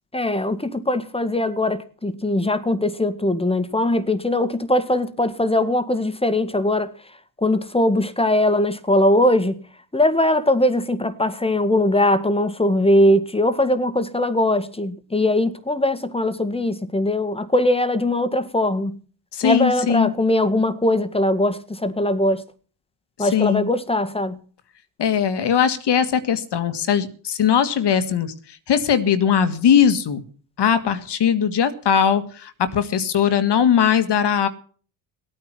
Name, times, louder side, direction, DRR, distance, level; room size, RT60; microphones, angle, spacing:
voice 1, 0.1-6.9 7.4-9.6 9.9-19.0 19.4-22.4 23.2-24.4, left 1 dB, 10° left, 1.9 m, -20 dB
voice 2, 19.3-20.1 23.2-23.7 25.0-30.2 30.6-34.5, left 8 dB, 55° left, 1.9 m, -20 dB
17.5 x 9.2 x 6.1 m
supercardioid pair, 65°, 50 cm